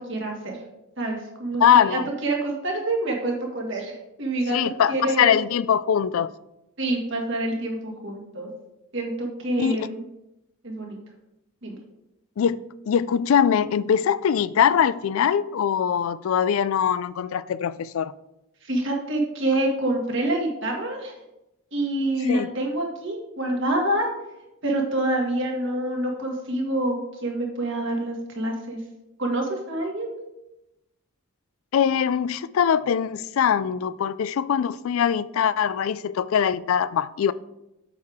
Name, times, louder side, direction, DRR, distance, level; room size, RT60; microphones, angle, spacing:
voice 1, 0.1-0.6 1.0-4.6 4.9-5.4 6.8-8.5 8.9-10.0 10.6-11.0 11.6-11.8 18.6-21.1 21.7-24.1 24.6-28.8 29.2-30.1, right 1 dB, 60° right, 1.8 m, -27 dB
voice 2, 1.6-2.1 4.5-6.3 9.6-9.9 12.4-12.6 12.9-18.1 22.3-22.5 31.7-37.3, left 8 dB, 70° left, 0.3 m, -22 dB
8.5 x 6.6 x 3.5 m
head